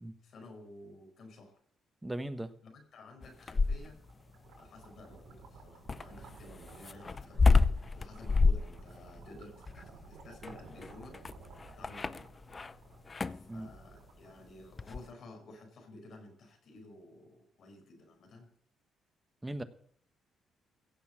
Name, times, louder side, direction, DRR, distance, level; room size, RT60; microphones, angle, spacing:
voice 1, 0.2-1.6 2.6-4.0 4.5-7.7 7.9-11.2 11.8-12.3 13.3-18.5, left 2 dB, 60° left, 4 dB, 4.7 m, -53 dB
voice 2, 2.0-2.5 13.5-13.7 19.4-19.6, right 1 dB, 15° right, 11 dB, 1.2 m, -38 dB
sound 1, 3.2-4.1 5.9-12.7 13.1-13.5 14.8-15.1, left 4 dB, 30° left, 0.6 m, -29 dB
sound 2, 3.7-14.9, right 4 dB, 80° right, 5.4 m, -54 dB
16.0 x 7.2 x 7.4 m, 0.62 s
cardioid pair, 90°, 0 cm